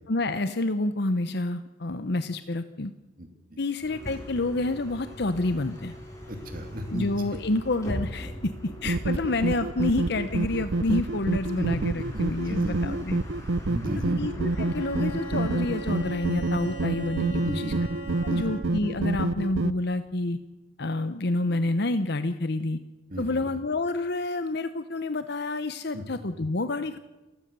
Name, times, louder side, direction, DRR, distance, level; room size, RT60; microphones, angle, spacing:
voice 1, 0.1-2.9 3.6-6.0 6.9-13.2 14.2-17.7 18.2-20.4 20.8-22.8 23.2-27.0, left 2 dB, 60° left, 11 dB, 0.9 m, -28 dB
voice 2, 3.2-3.6 6.3-7.1 11.5-13.0 13.7-14.2 17.4-17.8 18.2-18.6 23.1-23.4 25.9-26.0, equal, 50° right, 5 dB, 2.6 m, -35 dB
Bus, 3.8-16.2, equal, 15° left, 6.2 m, -40 dB
sound 1, 8.8-19.7, right 2 dB, 85° right, 0.7 m, -28 dB
Bowed string instrument, 14.5-18.9, right 3 dB, 80° left, 6.9 m, -40 dB
29.0 x 16.5 x 6.9 m, 1.1 s
head